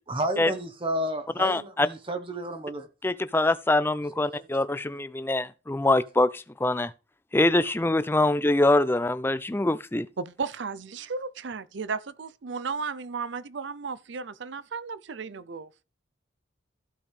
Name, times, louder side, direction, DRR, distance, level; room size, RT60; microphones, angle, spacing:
voice 1, 0.1-2.9 4.3-4.7, right 1 dB, 25° right, 0.9 m, -32 dB
voice 2, 1.4-1.9 3.0-6.9 7.3-10.1, left 2 dB, 10° left, 0.4 m, -24 dB
voice 3, 10.2-15.7, right 5 dB, 65° right, 0.5 m, -34 dB
15.0 x 5.3 x 3.3 m
head